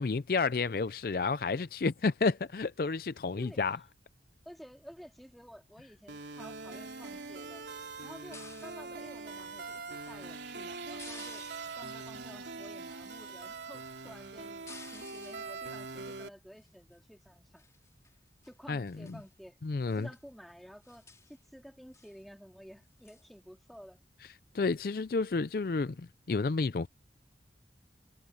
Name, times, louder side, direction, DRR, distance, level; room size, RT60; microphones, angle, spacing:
voice 1, 0.0-3.8 18.7-19.2 19.6-20.1 24.5-26.9, left 4 dB, 55° left, 0.4 m, -31 dB
voice 2, 4.5-7.7 8.0-11.5 11.7-14.6 14.9-17.6 18.4-19.5 19.9-24.0, equal, ahead, 3.7 m, -52 dB
sound 1, 6.1-16.3, right 4 dB, 90° right, 3.2 m, -43 dB
sound 2, 8.3-8.9 11.0-12.0 14.7-15.5 16.6-16.9 17.6-18.1 18.4-18.5 18.9-19.3 19.8-20.2 20.5-20.6 20.8-21.4 21.9-22.2 23.1-23.3, left 4 dB, 15° left, 3.8 m, -53 dB
head